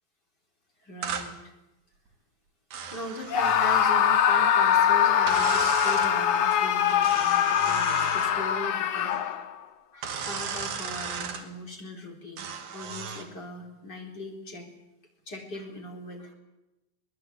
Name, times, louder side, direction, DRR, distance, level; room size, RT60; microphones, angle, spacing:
voice 1, 0.8-1.4 2.9-9.4 9.9-14.7 15.3-16.3, left 1 dB, 25° left, 0 dB, 4.3 m, -39 dB
sound 1, 1.0-1.3 2.7-3.9 5.3-6.1 7.0-8.4 10.0-11.4 12.4-13.3, right 6 dB, 60° right, 3.3 m, -35 dB
Screaming, 3.3-9.6, left 9 dB, 60° left, 2.4 m, -23 dB
22.5 x 20.0 x 8.4 m, 0.97 s
omnidirectional pair, 4.3 m